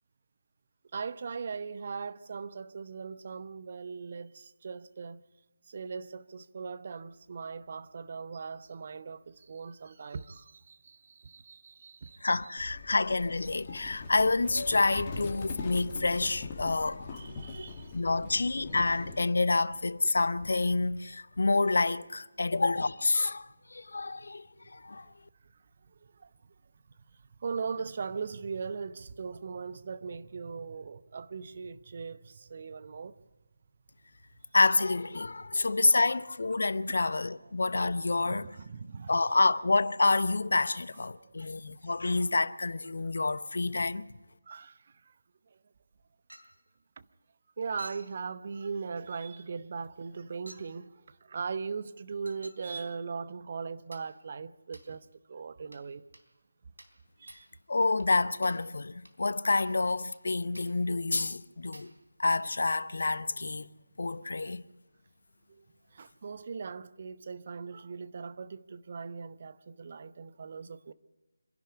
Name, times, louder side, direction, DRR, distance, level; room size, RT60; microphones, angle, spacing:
voice 1, 0.9-5.2 5.7-12.5 17.1-18.2 27.4-33.1 35.9-36.0 36.9-37.0 38.2-39.2 42.2-42.3 44.5-44.8 47.6-50.9 51.3-56.0 57.2-57.5 64.4-64.5 65.9-70.9, right 5 dB, 40° right, 0.8 m, -39 dB
voice 2, 12.2-17.2 17.9-25.1 34.5-38.5 39.1-44.1 57.7-61.9 62.2-63.7 64.0-64.6, left 3 dB, 55° left, 0.8 m, -28 dB
Livestock farm animals working animals, 12.6-19.2, left 4 dB, 25° left, 2.2 m, -42 dB
Chink clink, 46.3-46.6 47.8-48.1 49.1-49.3 50.5-50.7 52.2-52.7 53.9-54.1 54.7-54.9 55.7-55.9 56.1-56.3 56.8-57.0 57.3-57.5 58.0-58.1 58.4-58.7 59.0-59.2 59.5-59.8 60.1-60.3 60.5-60.8 61.3-61.4 61.7-62.0, right 1 dB, 80° right, 3.4 m, -52 dB
26.5 x 11.0 x 9.7 m
figure-of-eight pair, 155°, 0 cm